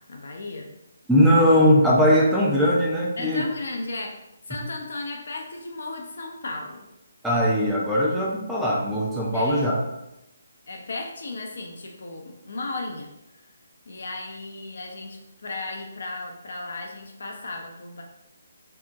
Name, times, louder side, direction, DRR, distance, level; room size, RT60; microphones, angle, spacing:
voice 1, 0.1-0.7 3.2-4.2 4.5-6.9 9.3-9.6 10.7-13.1 13.9-18.0, left 2 dB, 60° left, 1 dB, 0.4 m, -35 dB
voice 2, 1.1-3.5 7.2-9.8, equal, 5° right, -5 dB, 0.4 m, -20 dB
2.7 x 2.1 x 2.3 m, 0.88 s
figure-of-eight pair, 140°, 0 cm